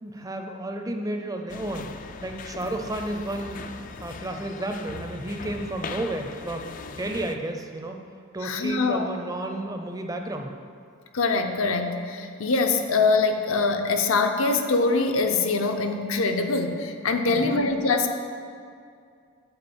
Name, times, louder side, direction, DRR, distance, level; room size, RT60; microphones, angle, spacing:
voice 1, 0.0-1.9 2.2-3.6 4.0-8.0 8.3-10.5 17.3-17.6, right 1 dB, 15° right, 4 dB, 0.5 m, -32 dB
sound 1, 1.5-7.4, left 4 dB, 35° left, 0.3 m, -39 dB
voice 2, 8.4-9.1 11.1-18.1, left 3 dB, 65° left, 5 dB, 0.7 m, -23 dB
7.9 x 4.9 x 7.2 m, 2.3 s
head